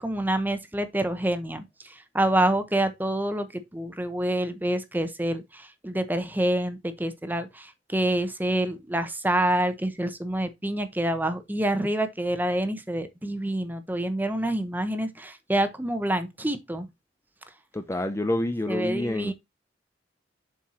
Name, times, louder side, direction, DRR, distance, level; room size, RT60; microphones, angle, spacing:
voice 1, 0.0-16.9 18.7-19.3, right 1 dB, 10° right, 0.9 m, -27 dB
voice 2, 17.7-19.3, left 1 dB, 15° left, 0.6 m, -28 dB
7.5 x 4.6 x 4.2 m
head